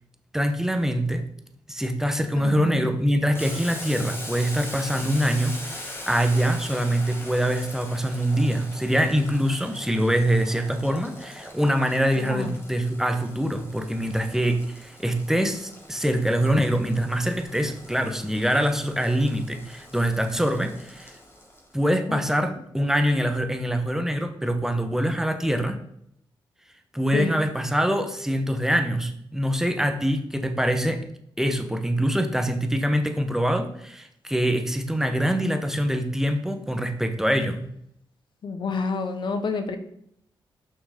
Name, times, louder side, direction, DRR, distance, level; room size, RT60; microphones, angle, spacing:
voice 1, 0.3-1.2 1.7-21.1 21.7-25.8 26.9-31.0 31.4-37.6, equal, 5° right, 6 dB, 1.0 m, -24 dB
voice 2, 2.4-2.9 12.2-12.5 22.1-22.5 27.1-27.4 38.4-39.8, left 4 dB, 60° left, 8 dB, 1.0 m, -29 dB
Boiling, 3.3-21.8, left 1 dB, 25° left, 2.1 m, -41 dB
6.2 x 6.1 x 5.0 m, 0.71 s
cardioid pair, 75°, 9 cm